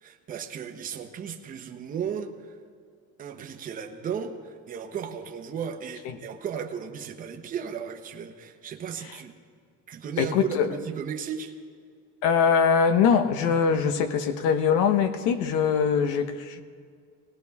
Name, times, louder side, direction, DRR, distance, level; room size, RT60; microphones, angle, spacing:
voice 1, 0.0-2.3 3.2-9.3 9.9-11.5, right 7 dB, 30° right, 4 dB, 0.9 m, -35 dB
voice 2, 10.2-10.7 12.2-16.6, left 6 dB, 80° left, 10 dB, 1.1 m, -22 dB
20.5 x 17.0 x 3.6 m, 2.1 s
cardioid pair, 165°, 30 cm